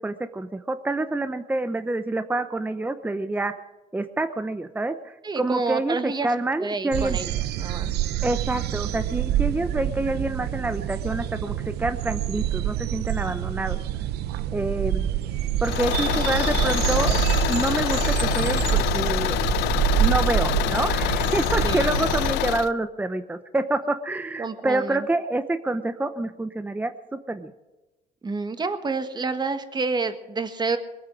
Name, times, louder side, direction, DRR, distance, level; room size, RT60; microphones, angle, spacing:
voice 1, 0.0-3.5 3.9-7.2 8.2-13.8 14.5-15.0 15.6-17.2 17.5-19.4 20.0-27.5, right 2 dB, 10° right, 10 dB, 0.8 m, -27 dB
voice 2, 5.2-6.3 6.6-8.1 21.6-22.0 24.4-25.1 28.2-30.8, right 4 dB, 25° right, 9 dB, 1.6 m, -29 dB
sound 1, 6.9-22.3, right 12 dB, 75° right, 0.7 m, -26 dB
Car / Engine, 15.6-22.7, left 16 dB, 85° left, 0.5 m, -26 dB
21.5 x 8.9 x 6.2 m, 1.1 s
cardioid pair, 110°, 17 cm